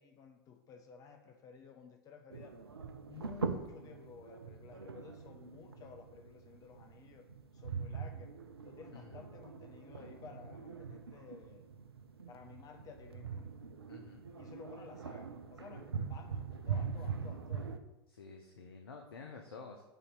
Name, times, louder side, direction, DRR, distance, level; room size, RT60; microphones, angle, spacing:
voice 1, 0.0-2.6 3.1-7.3 7.5-8.3 8.6-11.7 12.3-13.5 14.4-17.7, left 6 dB, 25° left, 5 dB, 0.5 m, -54 dB
sound 1, 2.3-17.8, right 6 dB, 80° right, 0.4 m, -43 dB
voice 2, 13.9-14.2 18.1-19.8, left 4 dB, 70° left, 3 dB, 0.6 m, -50 dB
7.1 x 2.8 x 5.2 m, 0.98 s
figure-of-eight pair, 90°, 13 cm